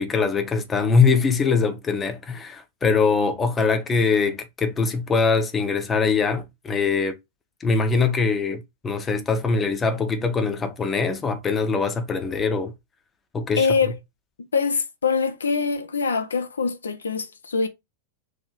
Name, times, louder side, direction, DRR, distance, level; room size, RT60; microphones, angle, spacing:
voice 1, 0.0-7.1 7.6-12.7 13.3-13.7, left 4 dB, 20° left, 0.7 m, -22 dB
voice 2, 13.6-13.9 14.5-17.7, left 5 dB, 70° left, 0.4 m, -23 dB
3.3 x 2.6 x 4.3 m
figure-of-eight pair, 90°, 0 cm